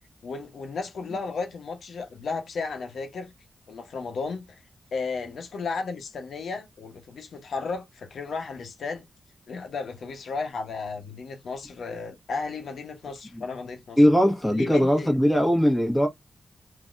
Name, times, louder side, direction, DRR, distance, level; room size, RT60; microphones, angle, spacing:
voice 1, 0.2-3.3 3.7-4.6 4.9-9.0 9.5-14.0 14.5-15.1, left 4 dB, 85° left, 0.8 m, -34 dB
voice 2, 14.0-16.1, equal, 5° left, 1.5 m, -20 dB
3.8 x 2.7 x 2.4 m
wide cardioid pair, 90°, 0 cm